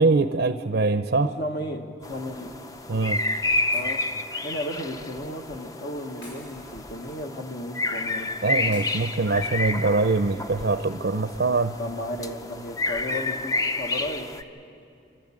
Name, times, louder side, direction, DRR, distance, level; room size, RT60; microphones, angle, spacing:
voice 1, 0.0-1.3 2.9-3.2 8.4-11.8, right 3 dB, 60° right, 9 dB, 0.6 m, -23 dB
voice 2, 1.2-2.6 3.7-4.0 4.4-8.3 11.8-14.3, left 1 dB, 60° left, 3 dB, 1.6 m, -34 dB
sound 1, 2.0-14.4, left 2 dB, 20° left, 0.6 m, -30 dB
Shatter, 3.7-4.6 6.2-7.3 8.7-9.7, left 1 dB, 80° left, 7.8 m, -50 dB
28.0 x 12.5 x 8.7 m, 2.5 s
head